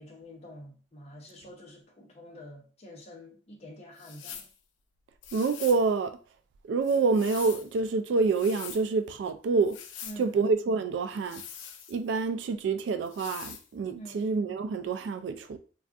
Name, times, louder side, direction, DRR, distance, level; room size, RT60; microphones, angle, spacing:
voice 1, 0.0-4.4 10.0-10.4 13.9-14.3, equal, 35° left, 0.7 m, -47 dB
sound 1, 4.0-4.5 5.2-5.8 6.8-7.7 8.2-8.8 9.6-10.2 11.2-12.2 13.1-13.7, left 8 dB, 85° left, 0.4 m, -44 dB
voice 2, 5.3-6.2 6.6-9.8 10.2-11.4 11.9-15.6, right 4 dB, 70° right, 0.3 m, -27 dB
2.4 x 2.4 x 3.5 m
head